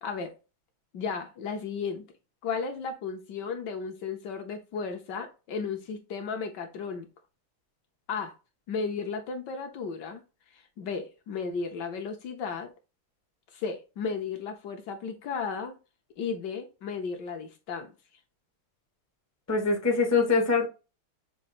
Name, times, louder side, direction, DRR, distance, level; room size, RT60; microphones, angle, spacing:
voice 1, 0.0-0.3 0.9-2.1 2.4-7.1 8.1-8.3 8.7-10.2 10.5-12.7 13.5-15.8 16.2-17.9, left 5 dB, 65° left, 1.2 m, -34 dB
voice 2, 19.5-20.7, left 4 dB, 25° left, 0.3 m, -23 dB
6.3 x 2.5 x 3.0 m
omnidirectional pair, 2.3 m